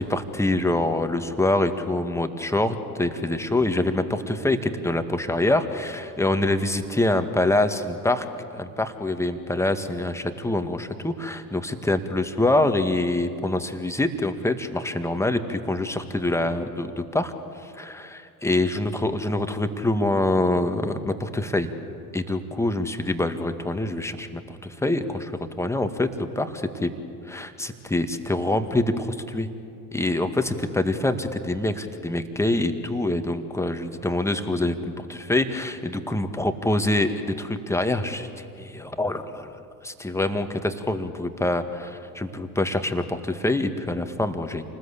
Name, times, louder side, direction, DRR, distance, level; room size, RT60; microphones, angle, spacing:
voice 1, 0.0-8.3 8.5-17.3 17.6-21.7 22.1-26.9 27.3-29.5 29.9-39.5 39.8-44.6, left 2 dB, 5° left, 7 dB, 2.0 m, -25 dB
28.5 x 20.0 x 8.5 m, 2.5 s
hypercardioid pair, 70°, 47 cm